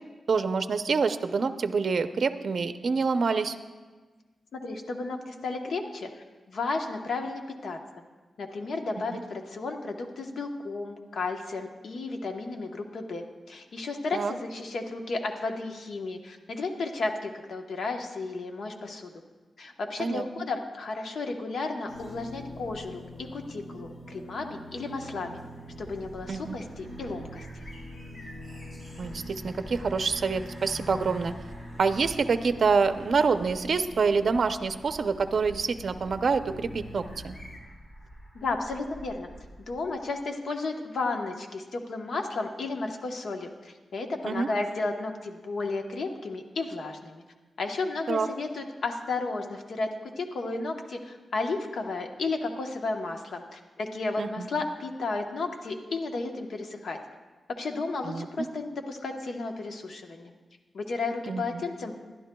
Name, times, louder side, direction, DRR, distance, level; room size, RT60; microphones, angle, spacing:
voice 1, 0.3-3.5 9.1-9.2 14.1-14.3 20.0-20.2 26.3-26.6 29.0-31.3 31.8-37.4 44.2-44.5 48.1-48.3 54.2-54.5 58.0-58.5 61.3-61.6, right 5 dB, 60° right, 9 dB, 0.5 m, -26 dB
voice 2, 4.5-7.8 8.4-19.1 19.6-25.4 25.8-27.6 38.3-39.3 39.7-47.2 47.6-57.0 57.5-60.3 60.7-62.0, left 3 dB, 75° left, 4 dB, 1.0 m, -33 dB
sound 1, 21.9-37.6, equal, 50° left, 2.7 m, -44 dB
sound 2, 25.7-40.1, equal, 30° left, 3.0 m, -49 dB
22.0 x 11.5 x 2.3 m, 1.3 s
wide cardioid pair, 105°, 0 cm